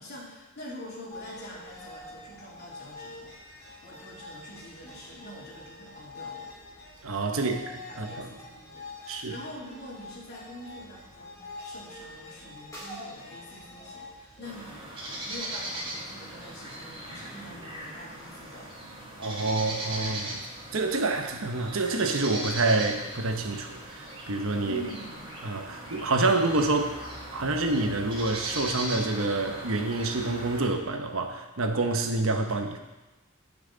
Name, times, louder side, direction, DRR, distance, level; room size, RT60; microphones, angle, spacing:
voice 1, 0.0-6.5 7.3-18.7 24.6-25.3, left 1 dB, 50° left, -5 dB, 3.0 m, -45 dB
sound 1, 1.1-15.1, left 2 dB, 15° left, 3.1 m, -45 dB
voice 2, 7.0-8.3 9.1-9.3 19.2-20.4 20.7-24.8 25.4-26.9 27.3-32.8, right 3 dB, 70° right, 5 dB, 1.0 m, -27 dB
sound 2, 14.4-30.7, right 1 dB, 25° right, 2.3 m, -39 dB
17.0 x 5.9 x 4.0 m, 1.1 s
head